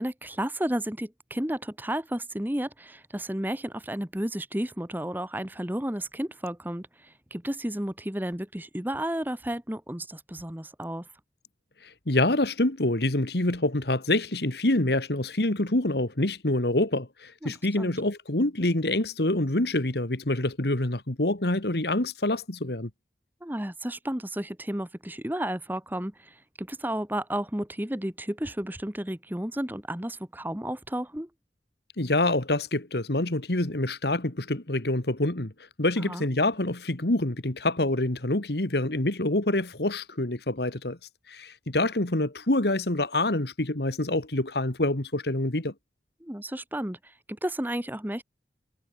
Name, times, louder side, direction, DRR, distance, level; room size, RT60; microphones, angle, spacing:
voice 1, 0.0-11.0 17.4-17.9 23.4-31.3 36.0-36.2 46.2-48.2, right 1 dB, 10° right, 1.4 m, -32 dB
voice 2, 11.8-22.9 32.0-35.5 35.8-41.0 41.3-45.7, left 1 dB, 70° left, 2.1 m, -26 dB
head